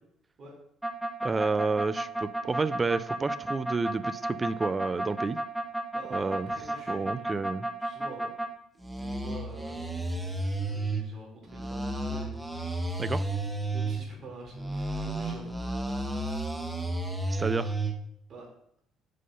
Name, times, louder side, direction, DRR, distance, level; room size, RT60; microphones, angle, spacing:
sound 1, 0.8-8.5 8.8-11.0 11.5-14.0 14.5-17.9, right 2 dB, 10° right, 1.0 m, -32 dB
voice 1, 1.2-5.4 6.1-6.5 6.9-7.7 13.0-13.3 17.3-17.7, right 3 dB, 25° right, 15 dB, 0.3 m, -30 dB
voice 2, 5.9-8.3 9.0-9.9 10.7-13.1 13.7-16.7 18.3-18.5, right 2 dB, 50° right, -1 dB, 3.0 m, -47 dB
6.4 x 3.8 x 5.2 m, 0.71 s
cardioid pair, 105°, 0 cm